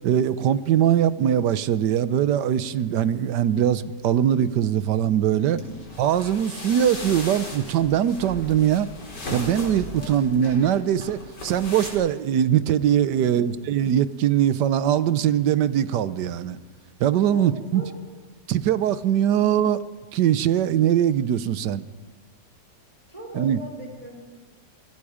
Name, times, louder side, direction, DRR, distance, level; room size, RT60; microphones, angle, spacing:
voice 1, 0.0-5.6 6.0-8.9 9.3-16.6 17.0-17.8 18.5-19.8 20.1-21.8 23.3-23.6, right 10 dB, 75° right, 14 dB, 1.4 m, -21 dB
voice 2, 5.4-5.7 10.0-10.2 13.1-13.6 17.3-18.0 23.1-24.2, left 1 dB, 20° right, 0 dB, 4.5 m, -40 dB
sound 1, 5.6-11.9, left 2 dB, 75° left, 5.0 m, -37 dB
26.5 x 21.0 x 5.0 m, 1.4 s
omnidirectional pair, 1.8 m